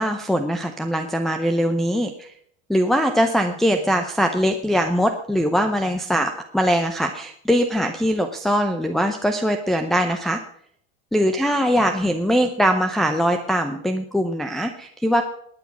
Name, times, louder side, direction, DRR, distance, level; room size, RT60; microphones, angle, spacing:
voice 1, 0.0-2.3 2.7-10.4 11.1-15.2, equal, ahead, 3 dB, 0.6 m, -21 dB
20.0 x 9.5 x 6.1 m, 0.66 s
cardioid pair, 170°, 31 cm